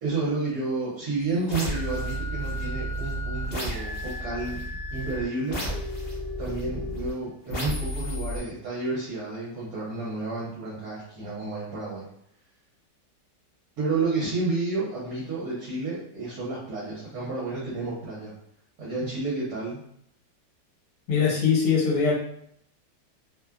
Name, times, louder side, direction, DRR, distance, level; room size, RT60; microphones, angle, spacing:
voice 1, 0.0-4.6 4.9-5.6 6.4-12.1 13.8-18.3 18.8-19.8, right 3 dB, 65° right, -7 dB, 1.2 m, -31 dB
sound 1, 1.5-7.1 7.5-8.4, equal, 50° left, 0.8 m, -32 dB
voice 2, 21.1-22.2, left 6 dB, 75° left, -3 dB, 1.3 m, -22 dB
3.0 x 2.1 x 2.3 m, 0.69 s
omnidirectional pair, 1.8 m